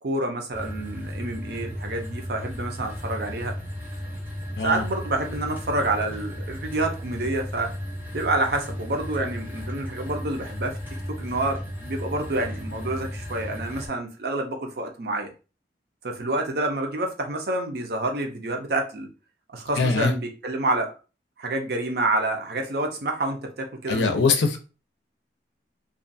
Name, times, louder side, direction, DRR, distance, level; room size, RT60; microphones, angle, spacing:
voice 1, 0.0-3.5 4.6-7.7 8.1-10.8 11.1-15.3 16.0-19.1 19.5-20.9 21.4-24.1, right 2 dB, 60° right, 3 dB, 0.5 m, -28 dB
sound 1, 0.5-13.9, equal, 10° right, 0.6 m, -35 dB
voice 2, 19.8-20.1 23.9-24.6, left 4 dB, 75° left, 6 dB, 0.5 m, -22 dB
2.4 x 2.3 x 2.5 m, 0.33 s
head